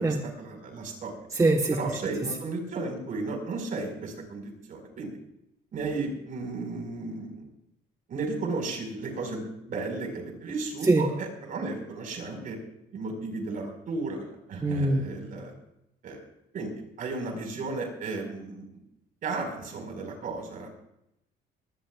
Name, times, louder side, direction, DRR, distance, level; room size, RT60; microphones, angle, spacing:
voice 1, 0.0-1.2 1.7-5.2 5.7-7.4 8.1-12.6 12.9-14.2 14.5-15.5 16.0-16.2 16.5-16.7 17.0-18.7 19.2-20.7, right 3 dB, 55° right, 3 dB, 4.9 m, -34 dB
voice 2, 1.3-1.8 10.8-11.1 14.6-15.1, right 2 dB, 20° right, 2 dB, 1.3 m, -22 dB
23.0 x 16.5 x 2.4 m, 0.81 s
cardioid pair, 110°, 17 cm